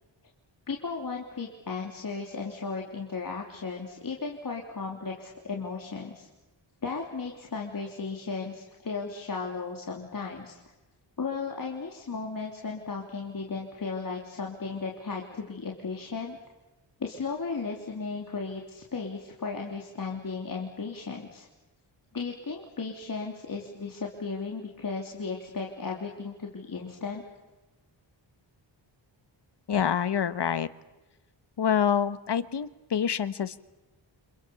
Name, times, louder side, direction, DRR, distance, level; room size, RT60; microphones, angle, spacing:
voice 1, 0.7-6.3 6.8-10.6 11.2-16.4 17.0-21.5 22.1-27.2, left 4 dB, 45° left, 0 dB, 3.4 m, -35 dB
voice 2, 29.7-30.7 31.6-33.6, left 8 dB, 60° left, 13 dB, 1.4 m, -26 dB
29.5 x 27.0 x 7.1 m, 1.1 s
wide cardioid pair, 115°, 45 cm